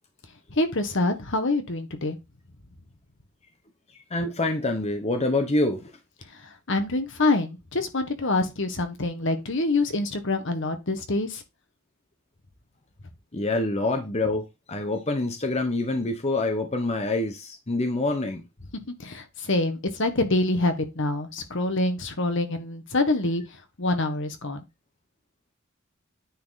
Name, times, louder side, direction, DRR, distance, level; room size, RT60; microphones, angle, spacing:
voice 1, 0.6-2.2 6.7-11.4 19.0-23.4 23.8-24.6, left 2 dB, 60° left, 1.5 m, -26 dB
voice 2, 4.1-5.9 13.3-18.4, left 2 dB, 30° left, 1.0 m, -26 dB
9.6 x 4.3 x 4.1 m
head